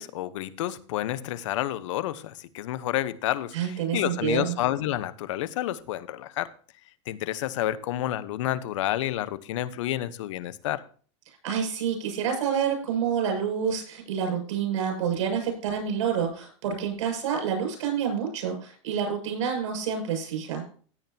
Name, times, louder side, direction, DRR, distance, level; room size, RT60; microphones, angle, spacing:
voice 1, 0.0-6.5 7.1-10.8, left 13 dB, 75° left, 15 dB, 1.1 m, -30 dB
voice 2, 3.5-4.5 11.4-20.7, right 7 dB, 80° right, 4 dB, 7.1 m, -28 dB
17.0 x 8.9 x 2.8 m, 0.42 s
supercardioid pair, 135°, 16 cm